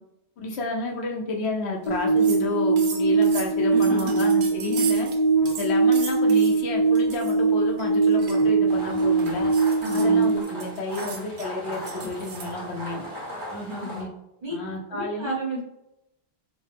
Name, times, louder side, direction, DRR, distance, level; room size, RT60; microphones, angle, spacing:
voice 1, 0.4-5.1 5.5-9.5 9.9-13.0 13.8-14.1 14.5-15.3, left 2 dB, 85° left, 1 dB, 1.0 m, -31 dB
sound 1, 1.8-1.9 2.2-2.4 2.8-5.2 5.5-6.5 7.0-7.4 7.8-12.5, right 6 dB, 85° right, 0.9 m, -38 dB
sound 2, 1.9-10.4, right 4 dB, 50° left, 0.5 m, -21 dB
voice 2, 3.7-4.1 9.8-10.3 13.5-13.9 14.4-14.5 14.9-15.6, right 1 dB, 45° right, -6 dB, 1.2 m, -31 dB
sound 3, 8.7-14.0, equal, 20° right, 1.3 m, -38 dB
5.0 x 2.2 x 3.4 m, 0.84 s
omnidirectional pair, 1.1 m